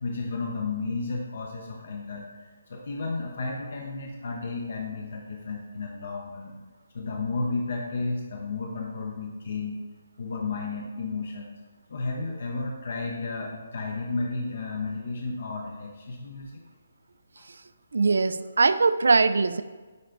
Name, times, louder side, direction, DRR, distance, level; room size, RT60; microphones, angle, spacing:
voice 1, 0.0-6.6 6.9-9.8 10.2-11.6 11.9-16.6 17.4-17.5, left 3 dB, 50° left, 0 dB, 0.8 m, -33 dB
voice 2, 17.9-19.6, right 4 dB, 80° right, 14 dB, 0.3 m, -21 dB
9.3 x 3.3 x 3.9 m, 1.3 s
hypercardioid pair, 175°, 0 cm